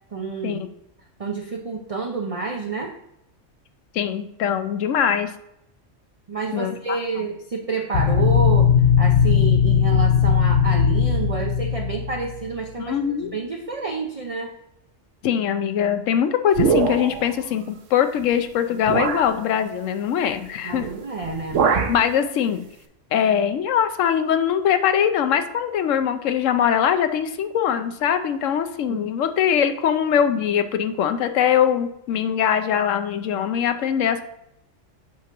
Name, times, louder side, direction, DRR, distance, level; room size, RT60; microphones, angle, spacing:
voice 1, 0.1-0.6 1.2-2.9 6.3-8.7 9.0-13.0 13.3-14.5 20.6-21.7 28.9-29.1, right 4 dB, 40° right, 2 dB, 0.6 m, -29 dB
voice 2, 3.9-5.3 6.5-7.0 12.8-13.3 15.2-20.9 21.9-22.7 23.1-34.2, left 8 dB, 85° left, 9 dB, 1.0 m, -22 dB
sound 1, 7.9-12.6, left 7 dB, 60° left, 0.8 m, -18 dB
sound 2, 16.5-17.3 18.2-18.3 18.9-19.3 20.7-21.0 21.2-22.0, right 6 dB, 80° right, 1.1 m, -22 dB
8.5 x 3.0 x 5.8 m, 0.82 s
omnidirectional pair, 1.3 m